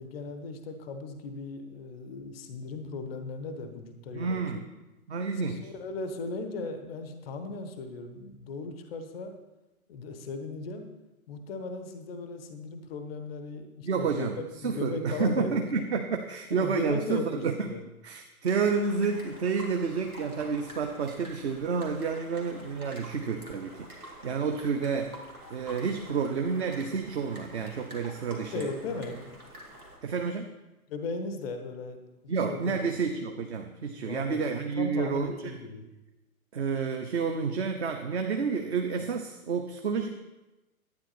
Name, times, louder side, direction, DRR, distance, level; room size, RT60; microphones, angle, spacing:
voice 1, 0.0-4.4 4.7-4.8 5.4-9.3 9.9-10.9 11.3-15.6 16.5-17.8 28.2-29.4 30.9-32.0 32.2-33.0 34.0-34.4 34.8-35.9, left 3 dB, 5° left, 6 dB, 0.4 m, -37 dB
voice 2, 4.1-4.7 5.1-5.7 13.8-17.7 18.0-25.2 25.5-28.7 30.0-30.6 32.3-35.5 36.5-40.2, right 5 dB, 50° right, 5 dB, 0.8 m, -30 dB
sound 1, 18.4-30.0, right 1 dB, 80° right, 2.5 m, -48 dB
11.5 x 9.5 x 4.2 m, 1.0 s
figure-of-eight pair, 120°, 44 cm